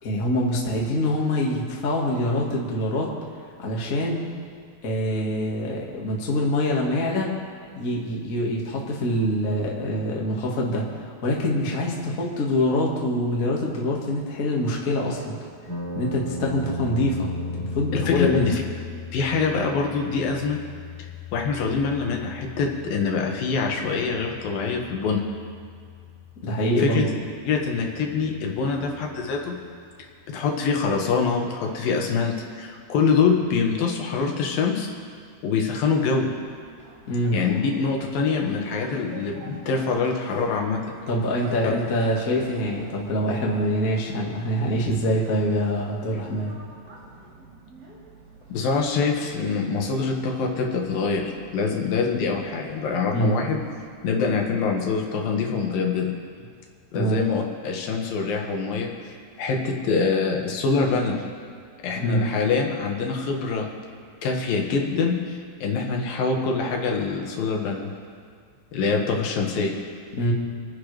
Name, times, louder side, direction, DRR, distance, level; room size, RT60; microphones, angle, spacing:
voice 1, 0.0-3.1 3.6-4.2 4.8-7.3 7.7-15.4 15.9-18.4 26.4-27.1 37.1-37.4 41.1-46.6 53.1-53.4 56.9-57.2 61.9-62.3 70.2-70.3, left 1 dB, 50° left, -3 dB, 1.0 m, -25 dB
sound 1, 15.7-29.7, left 3 dB, 30° right, 4.3 m, -38 dB
voice 2, 17.9-18.6 19.1-20.6 21.3-25.2 26.8-27.1 27.5-29.6 30.3-34.9 35.4-36.3 37.3-40.8 41.6-41.7 48.5-53.6 54.0-56.1 56.9-61.2 61.8-63.7 64.2-67.9 68.7-69.7, left 5 dB, 65° left, 1 dB, 2.9 m, -25 dB
sound 2, 35.7-54.4, right 2 dB, 75° right, 6.1 m, -47 dB
27.5 x 10.0 x 3.4 m, 2.2 s
omnidirectional pair, 4.7 m